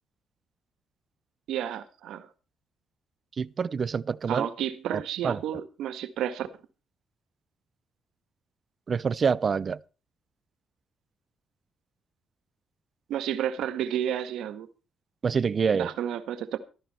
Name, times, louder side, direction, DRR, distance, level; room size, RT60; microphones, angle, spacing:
voice 1, 1.5-2.3 4.3-6.5 13.1-14.7 15.7-16.6, right 10 dB, 80° right, 1.7 m, -31 dB
voice 2, 3.4-4.5 4.9-5.4 8.9-9.8 15.2-15.9, right 6 dB, 45° right, 0.6 m, -26 dB
13.5 x 13.5 x 4.4 m
cardioid pair, 90°, 0 cm